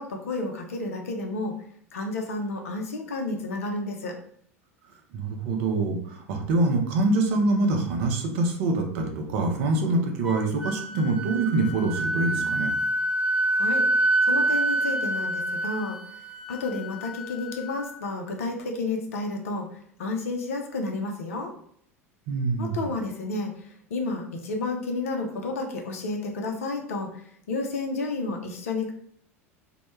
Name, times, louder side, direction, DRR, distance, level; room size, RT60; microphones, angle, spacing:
voice 1, 0.0-1.5 1.9-4.1 13.5-13.8 14.2-16.0 16.5-19.7 20.0-21.5 22.6-23.5 23.9-27.1 27.5-28.9, left 3 dB, 70° left, 2 dB, 0.5 m, -31 dB
voice 2, 5.1-12.7 22.3-22.8, right 2 dB, 60° right, 3 dB, 0.5 m, -25 dB
Wind instrument woodwind instrument, 10.2-18.0, right 1 dB, 5° right, 0.3 m, -27 dB
2.1 x 2.1 x 3.0 m, 0.64 s
figure-of-eight pair, 80°, 8 cm